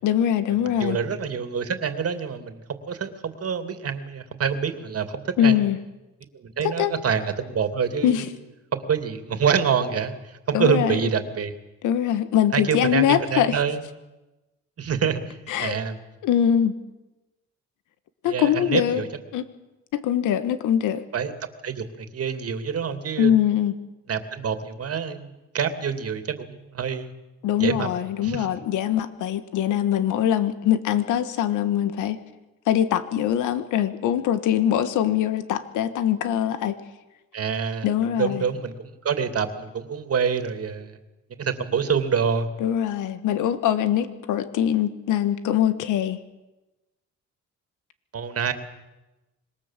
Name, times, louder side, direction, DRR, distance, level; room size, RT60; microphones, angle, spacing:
voice 1, 0.0-1.0 5.4-5.8 6.6-6.9 8.0-8.3 10.5-11.0 11.8-13.6 15.5-15.8 16.2-16.7 18.2-19.0 19.3-19.4 19.9-21.0 23.2-23.7 27.4-32.2 32.7-36.8 37.8-38.4 42.6-46.2, left 10 dB, 90° left, 11 dB, 1.5 m, -22 dB
voice 2, 0.8-5.6 6.3-8.3 8.7-10.1 10.5-11.5 12.5-13.8 14.8-16.0 18.2-19.1 21.1-21.3 21.6-23.4 24.1-27.1 27.6-27.9 28.2-28.5 37.3-37.9 38.2-40.9 41.4-42.5 48.1-48.5, right 6 dB, 50° right, 8 dB, 2.7 m, -26 dB
26.0 x 22.0 x 7.5 m, 1.1 s
cardioid pair, 90°, 30 cm